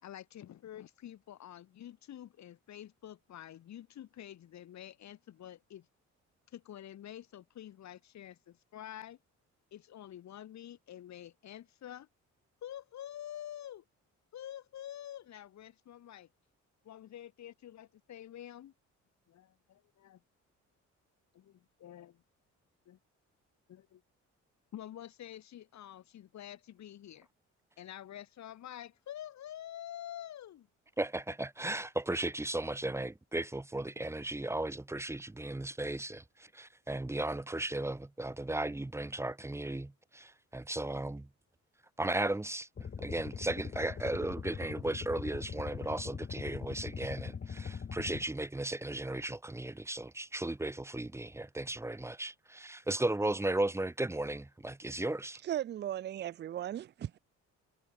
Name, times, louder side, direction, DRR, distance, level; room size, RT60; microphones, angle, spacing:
voice 1, 0.0-5.9 6.5-9.2 9.7-12.1 12.6-13.8 14.3-16.3 16.8-18.7 19.3-20.2 21.3-22.2 22.9-23.0 23.7-24.0 24.7-27.3 27.8-30.7, left 11 dB, 65° left, 1.9 m, -48 dB
voice 2, 31.0-36.2 36.5-41.3 42.0-42.7 43.0-55.4, right 2 dB, 10° right, 0.9 m, -35 dB
sound 1, 42.8-48.3, left 6 dB, 35° left, 1.3 m, -41 dB
voice 3, 55.4-57.2, right 11 dB, 35° right, 0.4 m, -37 dB
cardioid pair, 90°, 30 cm